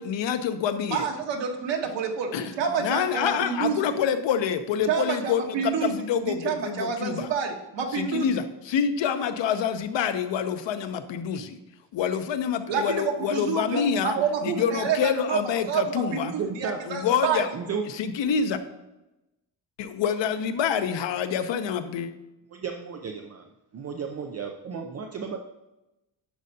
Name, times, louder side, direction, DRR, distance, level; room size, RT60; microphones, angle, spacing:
voice 1, 0.0-1.1 2.3-2.5 2.8-7.3 7.9-11.6 11.9-14.1 14.4-16.3 16.9-17.5 17.9-18.6 19.8-22.1, left 7 dB, 85° left, 9 dB, 0.8 m, -27 dB
voice 2, 0.9-3.8 4.8-5.9 6.2-8.4 12.7-15.4 15.7-17.4, right 6 dB, 85° right, 2 dB, 1.3 m, -28 dB
voice 3, 16.4-16.8 17.5-17.9 22.5-25.4, right 6 dB, 35° right, 3 dB, 0.5 m, -33 dB
10.5 x 6.4 x 2.8 m, 0.97 s
wide cardioid pair, 175°, 43 cm